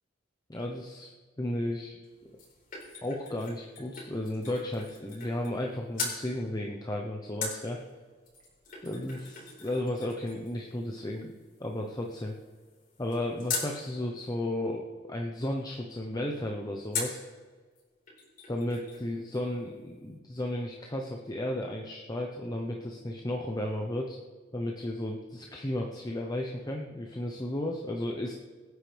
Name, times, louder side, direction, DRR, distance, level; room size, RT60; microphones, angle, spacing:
voice 1, 0.5-1.1 1.4-2.0 3.0-7.8 8.8-11.3 11.6-12.3 13.0-17.2 18.5-24.2 24.5-28.3, left 1 dB, 20° left, 0 dB, 1.0 m, -34 dB
sound 1, 2.0-5.7 5.9-6.2 7.4-13.7 16.9-17.3 17.8-17.9 18.1-19.1 19.3-19.4, left 4 dB, 50° left, 4.4 m, -40 dB
25.0 x 9.6 x 3.5 m, 1.5 s
head